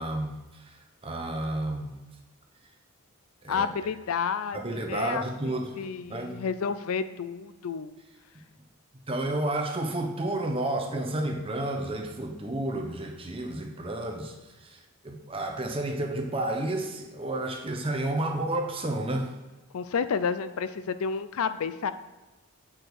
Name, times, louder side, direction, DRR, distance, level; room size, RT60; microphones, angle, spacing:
voice 1, 0.0-1.9 3.4-3.7 4.5-5.8 6.1-6.4 9.1-14.3 14.6-14.8 15.0-19.3, right 1 dB, 25° right, 3 dB, 0.8 m, -31 dB
voice 2, 3.5-7.9 19.7-21.9, left 6 dB, 75° left, 13 dB, 0.4 m, -30 dB
8.6 x 5.0 x 4.7 m, 1.1 s
head